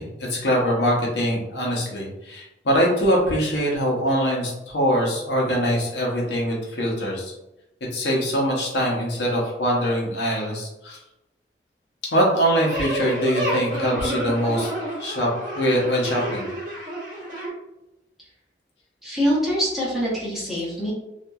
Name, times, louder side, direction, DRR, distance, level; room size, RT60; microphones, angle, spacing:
voice 1, 0.0-7.3 7.9-11.0 12.1-14.7 15.0-16.5, equal, 75° left, -2 dB, 0.8 m, -23 dB
sound 1, 12.6-17.5, right 1 dB, 50° right, 1.2 m, -29 dB
voice 2, 19.0-20.9, equal, ahead, -8 dB, 0.9 m, -24 dB
2.8 x 2.5 x 2.3 m, 0.91 s
head